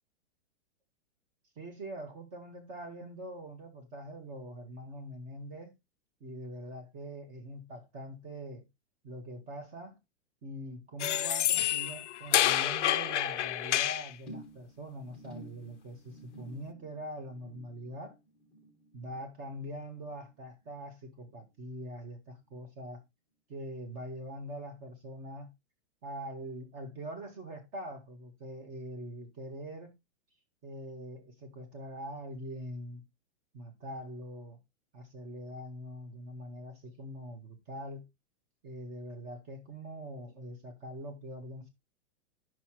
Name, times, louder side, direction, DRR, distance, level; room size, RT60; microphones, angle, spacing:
voice 1, 1.6-5.7 6.2-8.7 9.0-10.0 10.4-18.2 18.9-22.2 22.5-23.0 23.5-25.5 26.0-29.9 30.6-33.0 33.5-34.6 34.9-38.0 38.6-41.7, right 1 dB, 20° right, 1.7 m, -43 dB
sound 1, 11.0-14.1, left 13 dB, 90° left, 0.7 m, -28 dB
sound 2, 14.3-20.8 21.1-21.5 21.9-22.0, right 1 dB, ahead, 1.2 m, -53 dB
9.6 x 6.2 x 3.1 m
supercardioid pair, 175°, 35 cm